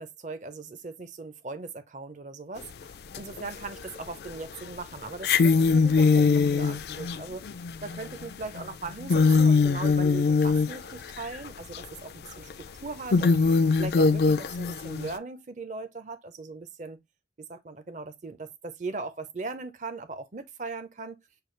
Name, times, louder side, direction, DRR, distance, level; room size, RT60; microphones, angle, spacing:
voice 1, 0.0-2.7 3.2-7.4 7.8-12.5 12.8-17.0 17.4-21.2, right 3 dB, 45° right, 0.6 m, -39 dB
sound 1, 2.6-2.7 3.1-3.9 4.2-4.3 5.1-11.5 11.7-11.8 12.5-12.6 13.1-15.1, left 4 dB, 60° left, 0.4 m, -22 dB
6.7 x 2.3 x 3.1 m
head